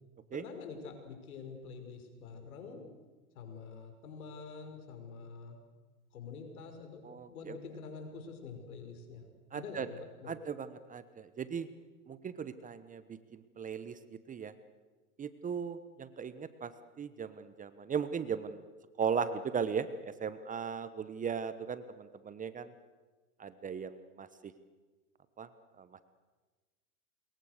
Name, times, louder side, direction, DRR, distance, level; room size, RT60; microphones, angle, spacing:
voice 1, 0.3-2.9 3.3-5.6 6.1-7.0 7.3-9.3 9.5-10.4, left 5 dB, 75° left, 5 dB, 5.8 m, -46 dB
voice 2, 7.0-7.6 9.5-9.9 10.3-11.7 12.1-14.0 14.3-14.5 15.2-16.7 17.0-18.6 19.0-19.9 20.2-22.7 23.4-24.3 25.4-25.5 25.8-26.0, right 7 dB, 20° right, 14 dB, 1.1 m, -37 dB
28.0 x 22.0 x 6.7 m, 1.3 s
hypercardioid pair, 110°, 44 cm